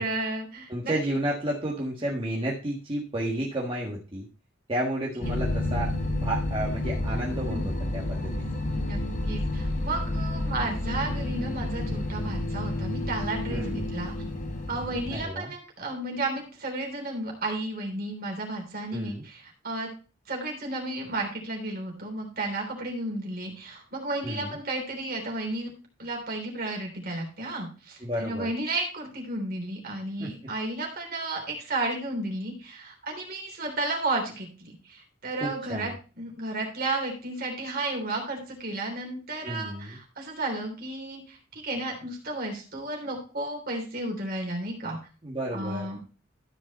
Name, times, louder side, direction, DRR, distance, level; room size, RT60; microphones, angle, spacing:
voice 1, 0.0-0.9 7.4-7.7 8.7-14.1 14.7-19.9 20.3-25.7 26.0-35.9 36.2-45.0 45.5-46.0, right 2 dB, 50° right, 1 dB, 3.3 m, -33 dB
voice 2, 0.7-4.3 4.7-8.5 13.5-13.9 15.1-15.5 18.9-19.2 24.2-24.6 28.0-28.5 30.2-30.3 35.4-35.9 39.4-40.0 45.2-45.9, right 1 dB, 25° right, -4 dB, 1.7 m, -32 dB
sound 1, 5.2-15.2, left 1 dB, 40° left, 1.5 m, -30 dB
13.0 x 5.3 x 4.2 m, 0.35 s
head